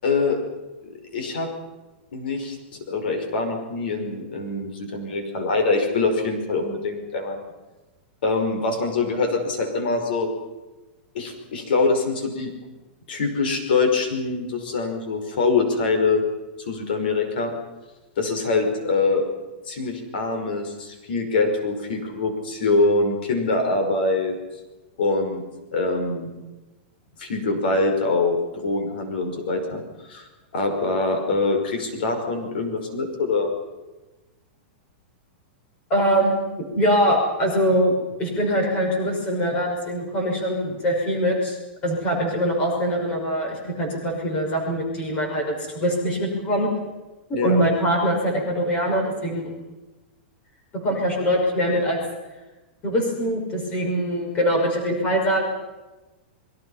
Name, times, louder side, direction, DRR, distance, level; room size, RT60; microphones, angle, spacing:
voice 1, 0.0-0.4 1.1-1.5 2.1-2.6 2.9-7.4 8.2-10.3 11.1-12.5 13.1-16.2 16.6-17.5 18.2-19.2 19.7-24.4 25.0-25.4 25.7-26.3 27.2-30.3 30.5-33.5 47.3-47.6, left 3 dB, 60° left, 5 dB, 5.4 m, -24 dB
voice 2, 35.9-36.4 36.8-37.9 38.2-41.6 41.8-46.7 47.4-49.5 50.7-52.0 52.8-55.4, equal, 20° left, 1 dB, 5.8 m, -23 dB
27.5 x 23.5 x 5.8 m, 1.1 s
supercardioid pair, 180°, 6 cm